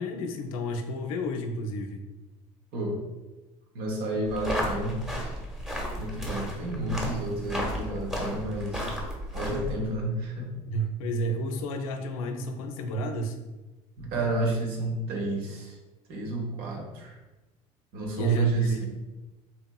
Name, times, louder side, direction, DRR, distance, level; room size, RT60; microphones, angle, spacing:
voice 1, 0.0-2.0 10.7-13.4 18.1-18.8, right 1 dB, 75° left, 5 dB, 0.4 m, -31 dB
voice 2, 3.7-5.0 6.0-8.9 9.3-10.5 14.0-15.8 16.1-17.2 17.9-18.8, right 2 dB, 60° right, 0 dB, 0.9 m, -30 dB
sound 1, 4.2-9.8, equal, 5° right, 1.0 m, -33 dB
4.1 x 2.8 x 2.2 m, 1.1 s
hypercardioid pair, 60°, 18 cm